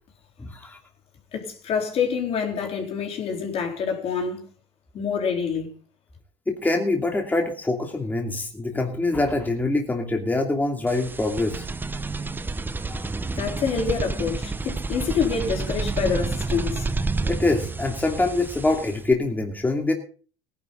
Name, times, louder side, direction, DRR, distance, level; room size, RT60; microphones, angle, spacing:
voice 1, 1.3-4.4 4.9-5.7 13.4-16.9, left 6 dB, 50° left, 4.0 m, -26 dB
voice 2, 6.5-11.6 12.9-13.0 17.2-19.9, left 2 dB, 15° left, 2.7 m, -24 dB
sound 1, 10.9-19.1, right 3 dB, 15° right, 0.9 m, -29 dB
18.0 x 11.0 x 4.0 m
supercardioid pair, 85°, 13 cm